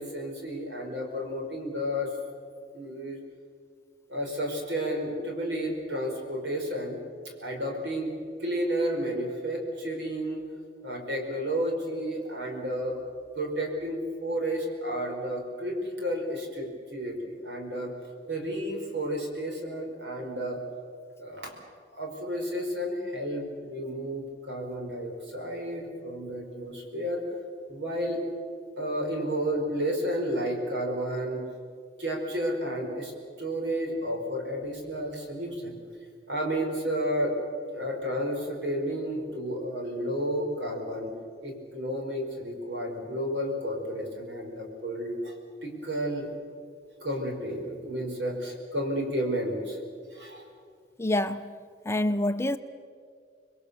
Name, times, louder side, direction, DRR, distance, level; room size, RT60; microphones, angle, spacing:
voice 1, 0.0-2.1 2.7-3.2 4.1-7.0 7.4-8.1 8.4-10.4 10.8-13.0 13.3-17.9 18.3-20.6 21.2-21.5 21.9-27.2 27.7-28.2 28.8-31.4 32.0-33.1 33.4-35.8 36.3-37.4 37.7-41.1 41.4-45.3 45.6-46.3 47.0-49.8 50.1-50.4, equal, 75° right, 5.2 m, -31 dB
voice 2, 51.0-51.5 51.9-52.6, left 1 dB, 15° left, 0.6 m, -26 dB
27.5 x 21.5 x 7.0 m
head